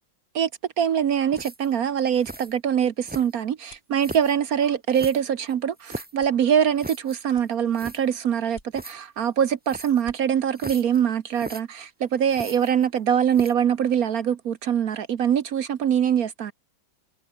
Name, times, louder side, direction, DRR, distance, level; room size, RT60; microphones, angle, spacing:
voice 1, 0.8-16.5, right 8 dB, 55° right, 1.1 m, -23 dB
sound 1, 1.3-1.8 2.2-2.5 3.0-3.5 4.0-4.4 4.9-6.2 6.8-7.2 7.5-7.6 7.7-8.0 8.7-8.9 9.7-10.0 10.5-11.0 11.3-11.6 12.3-13.0 13.3-13.7, right 1 dB, 10° right, 0.5 m, -38 dB
sound 2, 2.4-4.0 4.5-4.7 5.0-5.2 5.6-5.7 6.2-6.9 7.3-8.0 8.4-9.1 9.5-9.6 9.9-10.2, left 1 dB, 25° left, 6.4 m, -51 dB
omnidirectional pair, 2.2 m